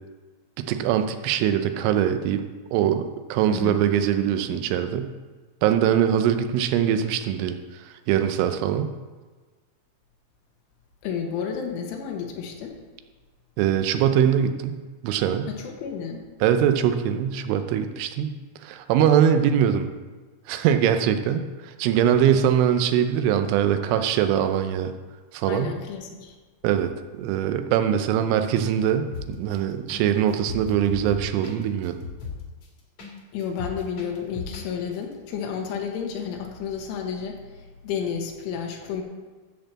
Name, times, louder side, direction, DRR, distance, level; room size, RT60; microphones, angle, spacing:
voice 1, 0.6-2.4 2.7-5.1 5.6-7.6 8.1-8.9 13.6-15.5 16.4-18.3 18.6-19.9 20.5-24.9 25.3-25.7 26.6-32.0, right 9 dB, 90° right, 8 dB, 3.3 m, -22 dB
voice 2, 11.0-12.8 15.5-16.3 25.5-26.4 33.3-39.0, left 7 dB, 85° left, 2 dB, 3.6 m, -31 dB
sound 1, 29.1-29.5 29.9-30.0 30.3-33.1 33.4-34.7 34.9-35.0, left 5 dB, 55° left, 1.8 m, -36 dB
13.5 x 4.5 x 7.3 m, 1.3 s
omnidirectional pair, 5.5 m